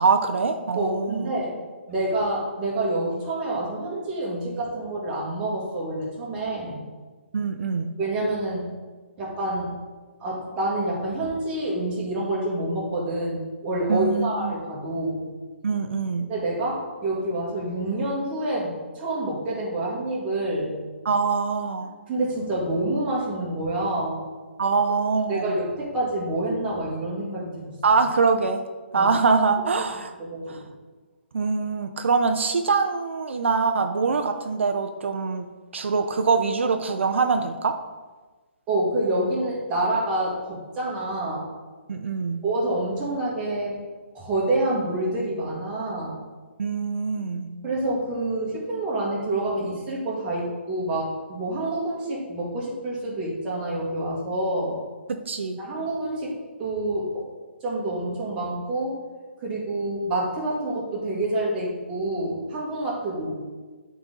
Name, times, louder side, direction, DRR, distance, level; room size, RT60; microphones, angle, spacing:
voice 1, 0.0-1.3 7.3-7.9 13.9-14.5 15.6-16.3 21.0-21.9 24.6-25.5 27.8-28.6 28.9-30.1 30.5-30.6 31.3-35.5 35.7-37.8 41.9-42.4 46.6-47.5 55.1-55.6, right 4 dB, 75° right, 6 dB, 0.5 m, -23 dB
voice 2, 0.7-1.6 1.9-6.8 8.0-8.7 9.2-9.7 10.2-15.2 16.3-20.7 22.1-24.2 25.3-27.7 28.9-29.1 30.2-30.6 38.7-41.5 42.4-43.8 44.1-46.1 47.6-54.8 55.6-56.3 56.6-57.2 57.6-58.9 59.4-63.4, right 1 dB, 15° right, -6 dB, 1.7 m, -27 dB
9.0 x 4.0 x 3.8 m, 1.3 s
hypercardioid pair, 165°, 6 cm